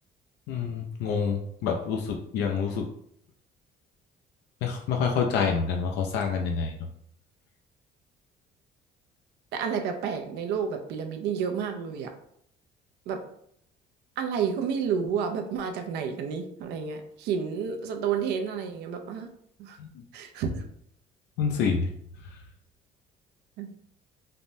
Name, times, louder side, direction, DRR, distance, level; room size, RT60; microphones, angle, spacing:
voice 1, 0.5-2.9 4.6-6.7 19.8-19.9 21.4-21.9, left 6 dB, 85° left, 2 dB, 0.4 m, -27 dB
voice 2, 9.5-12.1 13.1-13.2 14.2-19.3 19.6-19.8 20.1-20.6 23.6-23.7, right 6 dB, 85° right, 6 dB, 0.4 m, -30 dB
3.4 x 2.0 x 2.6 m, 0.69 s
cardioid pair, 110°, 17 cm